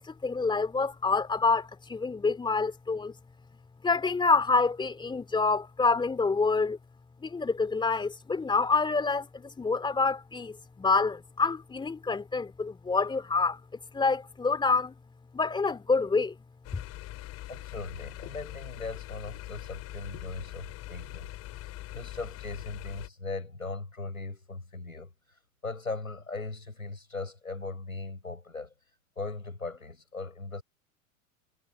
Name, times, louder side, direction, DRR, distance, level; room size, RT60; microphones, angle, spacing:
voice 1, 0.0-3.1 3.8-6.8 7.2-13.6 13.9-14.9 15.3-16.3, left 4 dB, 10° left, 2.5 m, -27 dB
sound 1, 16.6-23.1, left 16 dB, 35° left, 4.3 m, -42 dB
voice 2, 17.5-21.3 21.6-25.1 25.6-28.7 29.2-30.6, left 3 dB, 85° left, 6.5 m, -39 dB
figure-of-eight pair, 85°, 41 cm